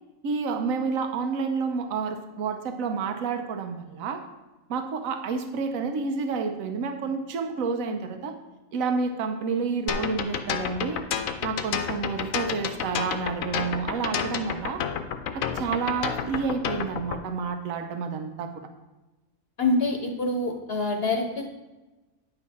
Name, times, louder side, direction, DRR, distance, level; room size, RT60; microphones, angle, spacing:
voice 1, 0.2-4.2 4.7-8.3 8.7-11.0 11.4-14.8 15.3-18.5, right 5 dB, 75° right, 6 dB, 1.2 m, -29 dB
sound 1, 9.9-17.2, left 7 dB, 80° left, 1.1 m, -30 dB
voice 2, 19.6-21.5, left 2 dB, 50° left, 3 dB, 1.0 m, -26 dB
9.8 x 5.5 x 4.2 m, 1.1 s
omnidirectional pair, 1.4 m